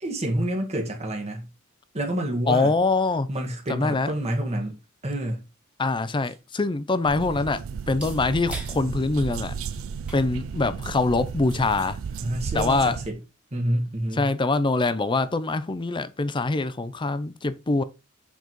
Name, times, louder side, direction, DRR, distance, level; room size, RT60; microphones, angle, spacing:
voice 1, 0.0-1.5 1.9-2.7 3.3-5.4 12.2-13.2 13.5-14.3, right 1 dB, 30° right, 1.5 m, -28 dB
voice 2, 2.5-3.3 3.7-4.1 5.8-9.6 10.1-12.0 12.5-13.0 14.2-17.8, left 3 dB, 20° left, 0.5 m, -24 dB
sound 1, 5.6-13.5, right 1 dB, 5° right, 1.6 m, -48 dB
sound 2, 7.0-13.1, right 6 dB, 65° right, 0.4 m, -34 dB
6.9 x 4.0 x 4.6 m
head